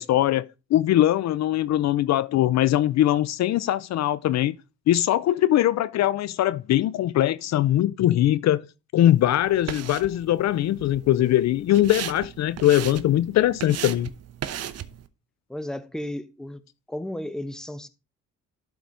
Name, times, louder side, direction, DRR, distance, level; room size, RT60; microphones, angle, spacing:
voice 1, 0.0-4.6 4.9-8.7 8.9-14.1, left 13 dB, 60° left, 0.5 m, -21 dB
sound 1, 9.0-15.1, right 10 dB, 55° right, 0.7 m, -37 dB
voice 2, 15.5-16.6 16.9-17.9, left 1 dB, ahead, 0.7 m, -33 dB
11.5 x 3.9 x 4.6 m
cardioid pair, 90°, 30 cm